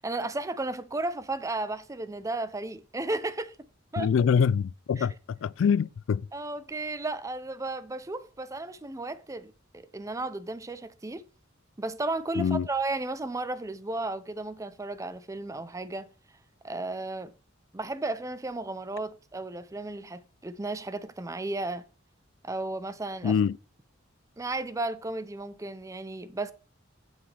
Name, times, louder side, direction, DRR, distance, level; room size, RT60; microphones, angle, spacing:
voice 1, 0.0-3.6 3.9-4.1 5.0-5.1 6.3-11.2 11.8-16.1 16.6-17.3 17.7-21.8 22.4-23.4 24.4-26.5, right 2 dB, 15° right, 0.5 m, -34 dB
voice 2, 4.0-6.3 12.4-12.7 23.2-23.6, left 6 dB, 65° left, 0.3 m, -25 dB
8.6 x 7.4 x 3.3 m
head